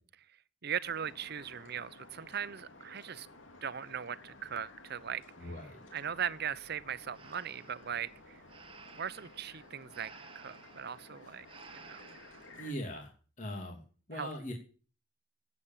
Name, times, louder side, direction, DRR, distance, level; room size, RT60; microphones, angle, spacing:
voice 1, 0.6-3.3 3.6-5.2 5.9-8.4 8.9-11.5 11.7-12.0 14.2-14.3, right 8 dB, 55° right, 0.7 m, -39 dB
sound 1, 0.8-12.7, left 2 dB, 85° left, 2.7 m, -55 dB
voice 2, 5.4-5.8 11.2-11.4 12.5-13.1 13.4-13.8 14.1-14.5, equal, 40° left, 2.9 m, -40 dB
Breathing, 7.1-12.7, right 5 dB, 30° right, 1.3 m, -55 dB
17.0 x 8.4 x 7.4 m
head